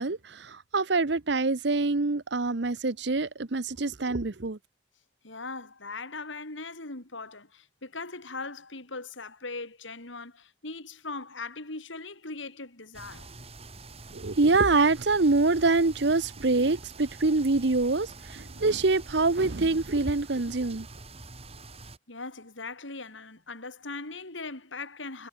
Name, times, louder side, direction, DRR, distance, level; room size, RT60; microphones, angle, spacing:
voice 1, 0.0-4.6 14.1-20.9, right 3 dB, 60° right, 0.9 m, -25 dB
voice 2, 5.2-13.3 22.1-25.3, left 3 dB, 75° left, 3.8 m, -40 dB
sound 1, 12.9-22.0, right 2 dB, 30° right, 4.3 m, -45 dB
head